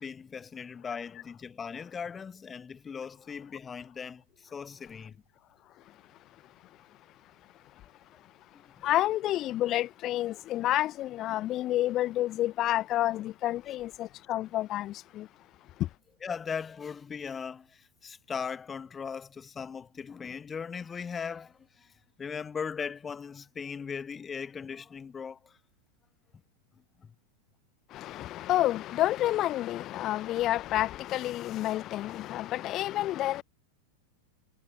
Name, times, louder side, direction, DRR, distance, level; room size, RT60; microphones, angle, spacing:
voice 1, 0.0-5.2 8.5-8.6 16.2-21.9 22.2-25.6 27.0-27.1, left 6 dB, 20° left, 1.3 m, -39 dB
voice 2, 5.8-15.3 15.6-15.9 27.9-33.4, left 14 dB, 35° left, 0.5 m, -30 dB
figure-of-eight pair, 90°, 0 cm